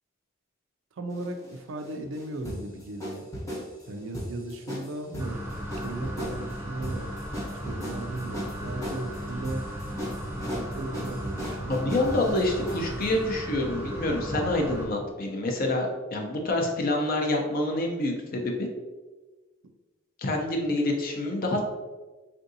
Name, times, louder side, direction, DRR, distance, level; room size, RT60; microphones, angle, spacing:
voice 1, 0.9-3.3 3.9-5.4 5.8-7.1 7.6-9.7 10.4-12.1, right 2 dB, 70° right, 6 dB, 0.4 m, -36 dB
sound 1, 1.1-13.1, equal, 15° left, 0.9 m, -38 dB
sound 2, 5.2-14.9, equal, 10° right, 0.5 m, -36 dB
voice 2, 11.6-18.7 20.2-21.6, left 1 dB, 45° left, 1 dB, 0.6 m, -27 dB
3.6 x 2.6 x 2.6 m, 1.2 s
head